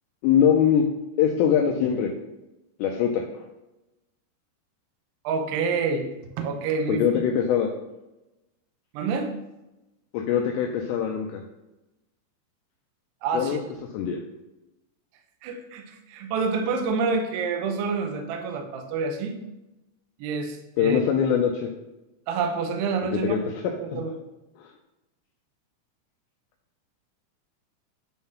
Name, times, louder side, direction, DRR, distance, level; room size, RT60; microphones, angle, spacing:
voice 1, 0.2-0.8 1.2-2.1 2.8-3.4 6.9-7.7 10.1-11.4 13.3-13.6 13.9-14.2 20.8-21.7 23.1-23.4 23.9-24.0, left 8 dB, 80° left, 1 dB, 2.6 m, -22 dB
voice 2, 5.2-6.1 6.4-7.2 8.9-9.3 13.2-13.6 15.4-19.4 20.2-21.0 22.3-23.4 23.7-24.2, right 4 dB, 75° right, 4 dB, 2.6 m, -28 dB
9.5 x 3.8 x 5.7 m, 0.95 s
omnidirectional pair, 5.6 m